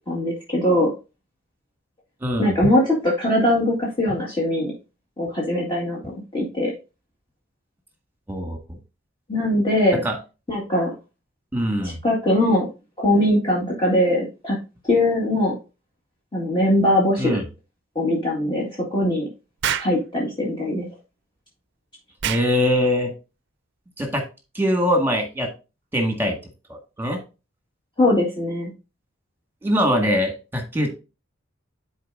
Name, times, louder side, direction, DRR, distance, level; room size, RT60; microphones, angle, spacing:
voice 1, 0.1-0.9 2.4-4.7 5.2-6.7 9.3-10.0 10.5-10.9 11.8-12.7 13.0-14.6 14.9-15.5 16.3-17.4 18.0-19.3 19.8-20.9 28.0-28.7, left 1 dB, 25° left, -5 dB, 1.9 m, -21 dB
voice 2, 2.2-2.5 8.3-8.8 10.0-10.2 11.5-12.0 17.2-17.5 22.2-23.1 24.0-24.3 24.5-25.5 25.9-26.4 26.7-27.2 29.6-30.9, equal, 10° right, 3 dB, 1.7 m, -22 dB
Explosion, 19.6-20.0 22.2-22.5, right 9 dB, 60° right, 0.5 m, -25 dB
11.0 x 4.5 x 2.6 m, 0.30 s
head